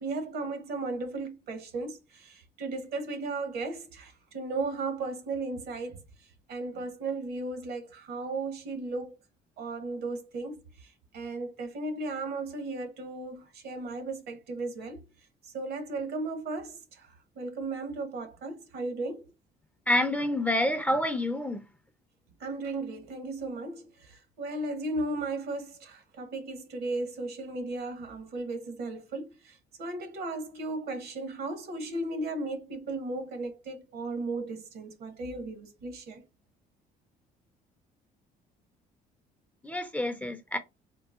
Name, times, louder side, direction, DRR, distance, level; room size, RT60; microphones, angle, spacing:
voice 1, 0.0-6.0 6.5-9.2 9.6-15.0 15.4-19.3 22.4-36.2, right 2 dB, 65° right, 1.0 m, -35 dB
voice 2, 19.9-21.6 39.6-40.6, left 1 dB, 10° left, 0.4 m, -28 dB
3.8 x 2.0 x 2.3 m
cardioid pair, 110°, 17 cm